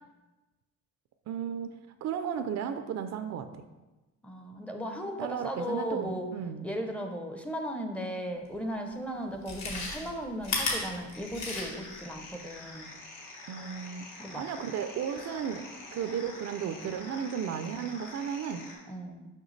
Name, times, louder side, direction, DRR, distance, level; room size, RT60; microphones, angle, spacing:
voice 1, 1.3-1.8 2.0-3.6 5.2-6.7 13.5-14.1 14.3-15.6 15.9-18.6, right 8 dB, 55° right, 9 dB, 0.4 m, -34 dB
voice 2, 4.2-6.3 6.6-12.9 14.2-14.5 18.8-19.3, equal, 5° left, 3 dB, 0.6 m, -36 dB
Chewing mastication, 8.5-8.6 9.3-12.0 12.3-12.4, left 3 dB, 55° left, 1.7 m, -33 dB
sound 1, 11.1-18.7, left 2 dB, 75° left, 1.6 m, -46 dB
6.5 x 5.5 x 3.2 m, 1.1 s
cardioid pair, 120°, 33 cm